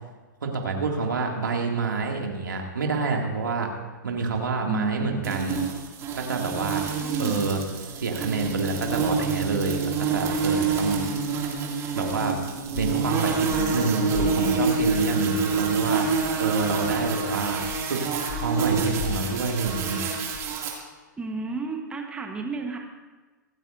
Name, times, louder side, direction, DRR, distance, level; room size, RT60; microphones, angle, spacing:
voice 1, 0.4-3.7 4.0-5.6 6.1-6.8 7.2-7.6 8.0-9.8 10.1-11.0 11.9-12.4 12.7-17.6 17.9-20.0, right 4 dB, 75° right, 1 dB, 2.3 m, -27 dB
voice 2, 4.7-5.2 7.0-7.5 21.2-22.8, right 3 dB, 10° right, 2 dB, 1.2 m, -31 dB
sound 1, 5.2-20.7, right 5 dB, 25° right, 2.4 m, -27 dB
sound 2, 12.7-13.0 13.5-13.8 14.1-14.4 14.8-15.1 15.5-15.7 16.2-16.5 16.9-17.2 17.6-17.9 18.3-18.6 19.0-19.3 19.6-19.9 20.3-20.5, left 9 dB, 55° left, 2.7 m, -36 dB
25.5 x 9.0 x 2.6 m, 1.3 s
figure-of-eight pair, 115°, 11 cm